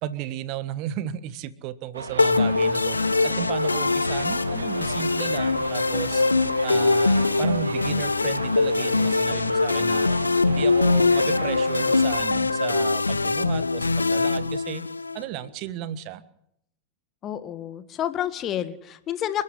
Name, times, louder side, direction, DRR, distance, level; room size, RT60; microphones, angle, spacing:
voice 1, 0.0-6.2 6.6-14.8 15.1-16.2, right 12 dB, 40° right, 15 dB, 1.4 m, -34 dB
Subway metro underground, 1.9-12.3, right 4 dB, 70° right, 2.7 m, -36 dB
sound 1, 2.2-15.2, left 3 dB, 80° left, 0.9 m, -22 dB
voice 2, 17.2-19.4, left 11 dB, 30° left, 12 dB, 1.8 m, -29 dB
29.5 x 12.0 x 10.0 m, 0.77 s
figure-of-eight pair, 90°, 0 cm